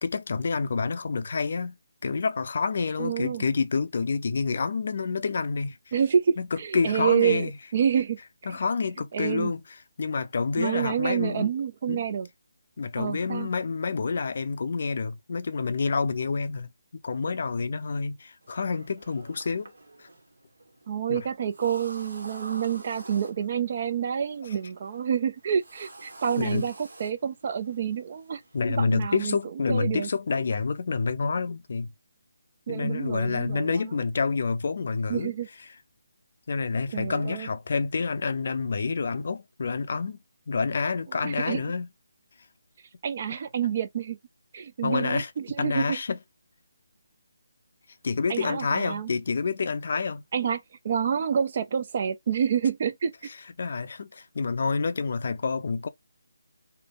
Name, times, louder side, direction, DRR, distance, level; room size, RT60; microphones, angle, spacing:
voice 1, 0.0-1.8 2.0-5.8 6.4-7.5 8.5-9.6 10.0-11.5 11.9-12.0 12.8-19.7 20.0-20.1 21.1-21.3 24.4-24.6 26.4-26.7 28.5-31.9 32.7-35.3 36.5-40.2 40.5-41.9 44.8-45.3 45.6-46.2 48.0-50.2 53.6-55.9, left 4 dB, 50° left, 0.5 m, -28 dB
voice 2, 3.0-3.4 5.9-8.2 8.5-8.6 9.1-9.5 10.6-12.3 13.0-13.5 20.9-28.4 28.7-30.1 32.7-34.0 35.1-35.5 36.9-37.5 41.2-41.7 43.0-44.2 44.5-46.0 48.3-49.1 50.3-53.1, right 8 dB, 40° right, 0.5 m, -28 dB
sound 1, 18.4-28.6, right 2 dB, 65° right, 1.0 m, -49 dB
3.3 x 2.1 x 3.8 m
figure-of-eight pair, 150°, 0 cm